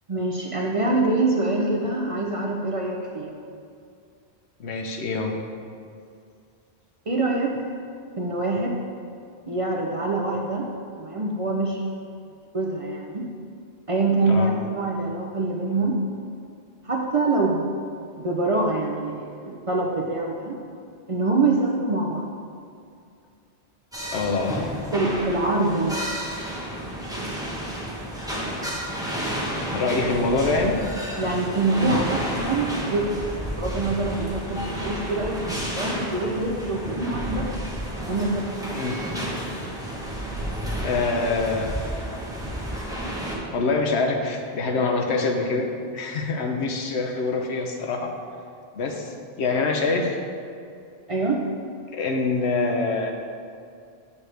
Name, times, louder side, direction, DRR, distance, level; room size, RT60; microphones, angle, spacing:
voice 1, 0.1-3.3 7.1-7.7 8.2-8.8 9.5-10.7 11.0-11.8 12.5-13.3 13.9-16.0 16.8-17.6 18.1-20.6 21.1-22.3 24.9-26.0 31.2-37.5 38.0-38.7 51.1-51.4, right 2 dB, 40° right, -1 dB, 0.5 m, -25 dB
voice 2, 4.6-5.4 14.2-14.5 24.1-24.7 29.7-30.8 38.7-39.0 40.8-42.3 43.5-45.7 45.9-48.1 48.7-50.2 51.9-53.1, left 3 dB, 85° left, 3 dB, 1.0 m, -25 dB
sound 1, 23.9-43.4, right 1 dB, 5° right, 1.0 m, -31 dB
7.7 x 5.6 x 3.3 m, 2.4 s
omnidirectional pair, 1.1 m